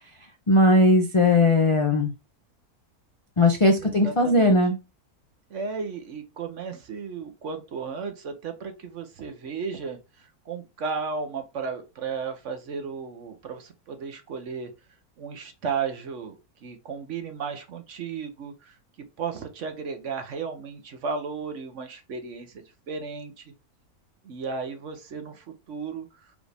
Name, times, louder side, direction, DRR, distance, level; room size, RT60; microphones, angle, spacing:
voice 1, 0.5-2.1 3.4-4.8, left 1 dB, 55° left, 3 dB, 0.3 m, -19 dB
voice 2, 3.8-4.6 5.5-10.0 10.5-14.7 15.2-16.3 16.6-18.8 19.2-23.4 24.2-26.1, right 5 dB, 55° right, 7 dB, 1.1 m, -34 dB
5.0 x 2.6 x 3.3 m, 0.26 s
omnidirectional pair, 1.6 m